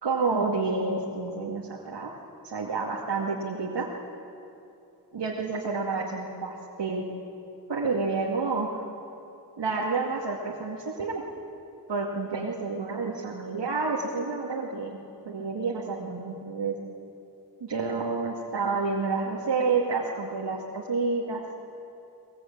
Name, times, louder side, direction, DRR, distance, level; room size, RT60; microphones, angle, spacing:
voice 1, 0.0-2.1 2.4-3.9 5.1-7.1 7.7-8.8 9.6-11.2 11.9-15.0 15.2-16.7 17.6-21.4, right 4 dB, 90° right, -3 dB, 2.4 m, -29 dB
22.5 x 21.5 x 8.7 m, 2.8 s
wide cardioid pair, 80°, 41 cm